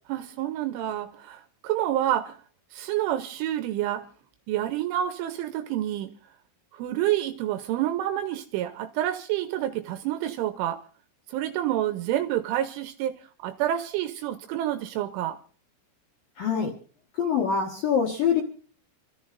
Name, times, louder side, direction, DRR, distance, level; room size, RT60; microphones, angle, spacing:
voice 1, 0.1-2.4 2.7-4.1 4.5-6.1 6.7-10.8 11.3-15.4, right 12 dB, 80° right, 3.0 m, -28 dB
voice 2, 16.4-16.7 17.2-18.4, left 7 dB, 60° left, 2.5 m, -24 dB
28.0 x 14.0 x 2.6 m
omnidirectional pair, 6.0 m